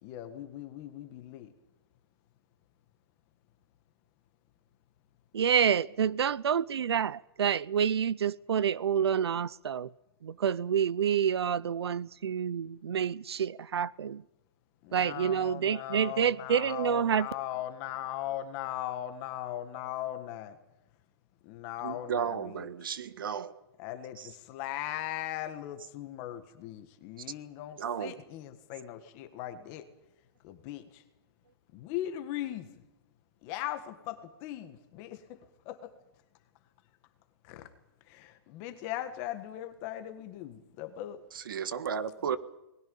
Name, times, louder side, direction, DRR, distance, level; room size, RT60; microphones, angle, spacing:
voice 1, 0.0-1.5 14.8-20.6 21.4-22.7 23.8-29.8 30.4-31.0 31.7-32.7 33.4-35.4 35.6-35.9 37.4-37.7 38.1-41.2, left 13 dB, 20° left, 1.6 m, -39 dB
voice 2, 5.3-9.9 10.2-14.2 14.9-17.3, right 8 dB, 80° right, 0.7 m, -28 dB
voice 3, 21.8-23.6 24.2-24.3 27.8-28.2 41.3-42.4, right 7 dB, 55° right, 1.6 m, -34 dB
29.5 x 20.5 x 5.5 m
hypercardioid pair, 175°, 13 cm